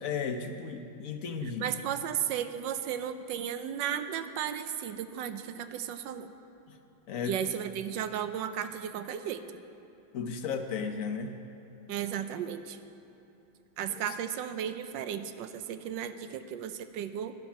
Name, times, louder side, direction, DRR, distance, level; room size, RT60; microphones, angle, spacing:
voice 1, 0.0-1.6 6.7-6.8 7.1-7.4 10.1-11.4, left 5 dB, 65° left, 6 dB, 0.9 m, -34 dB
voice 2, 1.4-6.3 7.3-9.4 11.9-12.8 13.8-17.3, right 9 dB, 80° right, 10 dB, 1.3 m, -34 dB
11.5 x 11.0 x 5.9 m, 2.9 s
omnidirectional pair, 2.0 m